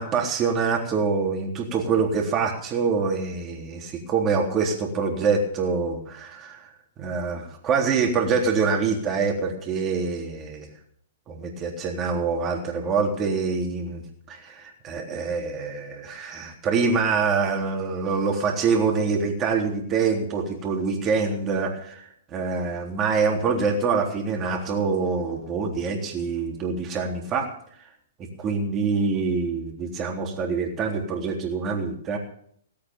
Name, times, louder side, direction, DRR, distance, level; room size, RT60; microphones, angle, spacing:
voice 1, 0.0-6.7 7.0-10.7 11.3-27.5 28.2-32.2, right 5 dB, 25° right, 1 dB, 3.6 m, -25 dB
18.0 x 8.5 x 7.3 m, 0.65 s
figure-of-eight pair, 115°, 0 cm